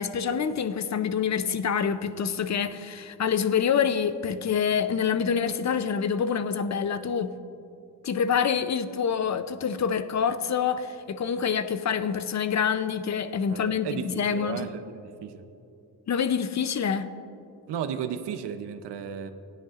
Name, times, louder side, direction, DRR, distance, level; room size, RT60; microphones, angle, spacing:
voice 1, 0.0-7.3 8.0-14.7 16.1-17.1, left 7 dB, 40° left, 0.6 m, -26 dB
voice 2, 13.5-15.5 17.7-19.3, right 8 dB, 75° right, 0.8 m, -34 dB
17.5 x 10.0 x 2.5 m
cardioid pair, 75°, 41 cm